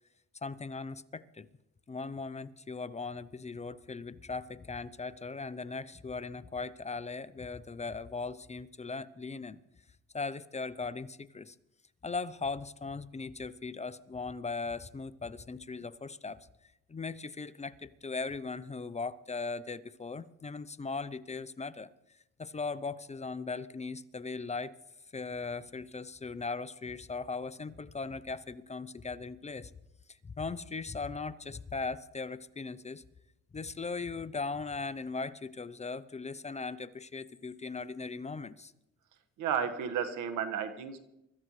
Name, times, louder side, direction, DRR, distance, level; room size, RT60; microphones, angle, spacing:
voice 1, 0.4-1.5 1.9-9.6 10.1-11.5 12.0-16.4 16.9-21.9 22.4-24.7 25.1-29.7 30.2-33.0 33.5-38.7, left 4 dB, 20° left, 14 dB, 0.6 m, -39 dB
voice 2, 39.4-41.0, right 8 dB, 85° right, 8 dB, 1.6 m, -32 dB
24.0 x 14.0 x 3.2 m, 0.88 s
cardioid pair, 90°, 30 cm